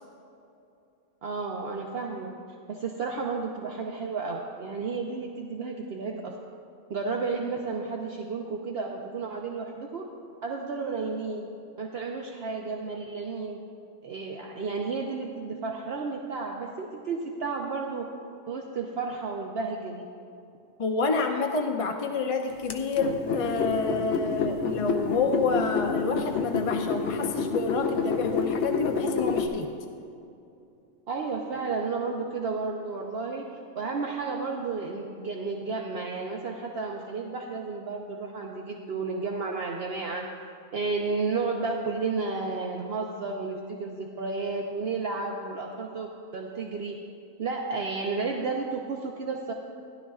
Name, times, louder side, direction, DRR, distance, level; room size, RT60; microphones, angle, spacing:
voice 1, 1.2-2.3 2.7-6.4 6.9-10.1 10.4-11.5 11.8-13.6 14.0-18.1 18.5-20.1 31.1-33.4 33.7-40.3 40.7-47.0 47.4-49.5, right 4 dB, 60° right, 0 dB, 0.9 m, -32 dB
voice 2, 20.8-29.7, left 4 dB, 45° left, 4 dB, 0.4 m, -28 dB
sound 1, 22.7-29.5, left 4 dB, 65° left, 1.0 m, -28 dB
16.0 x 11.0 x 2.4 m, 2.6 s
omnidirectional pair, 1.2 m